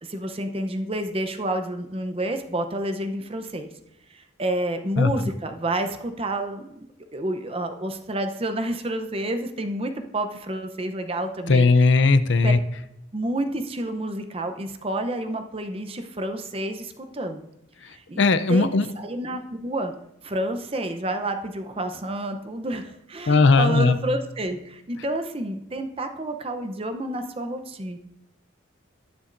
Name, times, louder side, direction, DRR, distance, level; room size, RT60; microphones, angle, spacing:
voice 1, 0.0-3.7 4.1-6.9 7.1-11.7 12.4-12.5 13.1-17.5 17.9-18.2 18.5-18.7 19.0-19.9 20.2-28.0, right 1 dB, 30° right, 7 dB, 0.7 m, -29 dB
voice 2, 11.5-12.6 18.2-18.9 23.3-24.0, left 3 dB, 70° left, 11 dB, 0.6 m, -17 dB
19.0 x 7.1 x 2.6 m, 0.82 s
head